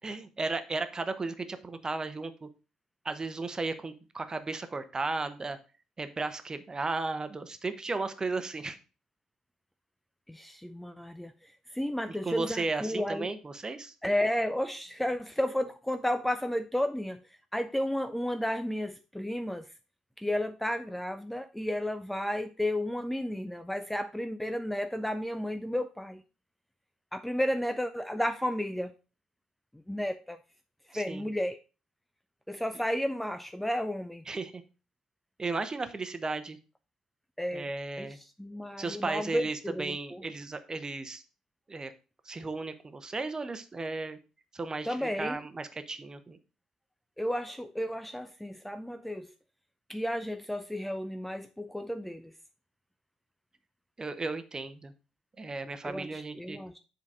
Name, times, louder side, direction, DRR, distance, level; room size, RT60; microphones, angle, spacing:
voice 1, 0.0-2.5 3.0-5.6 6.0-8.8 12.1-13.9 30.9-31.3 34.3-34.6 35.4-36.6 37.5-38.2 38.8-41.2 41.7-41.9 42.2-44.2 44.5-46.4 54.0-54.9 55.4-56.6, right 3 dB, 25° right, 0.9 m, -35 dB
voice 2, 10.3-11.3 11.7-13.3 14.0-17.2 17.5-19.7 20.2-26.2 27.1-28.9 29.9-30.4 30.9-31.6 32.5-34.2 37.4-37.7 38.0-38.1 38.4-40.2 44.9-45.4 47.2-49.3 49.9-52.3 55.8-56.8, left 1 dB, 5° left, 0.5 m, -32 dB
7.3 x 4.0 x 4.7 m
hypercardioid pair, 50°, 3 cm